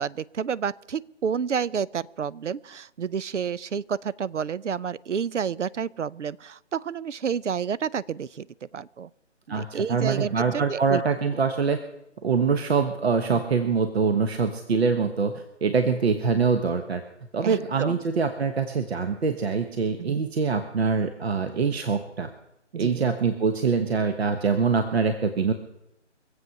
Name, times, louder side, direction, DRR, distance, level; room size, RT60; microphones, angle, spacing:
voice 1, 0.0-9.1 9.5-11.0 13.3-13.4 17.4-18.0 20.0-20.2 22.7-23.0, right 7 dB, 75° right, 20 dB, 0.6 m, -30 dB
voice 2, 9.5-11.8 12.2-17.0 17.3-22.3 22.8-25.5, right 5 dB, 55° right, 8 dB, 1.2 m, -24 dB
24.0 x 8.1 x 5.8 m, 0.85 s
figure-of-eight pair, 155°, 36 cm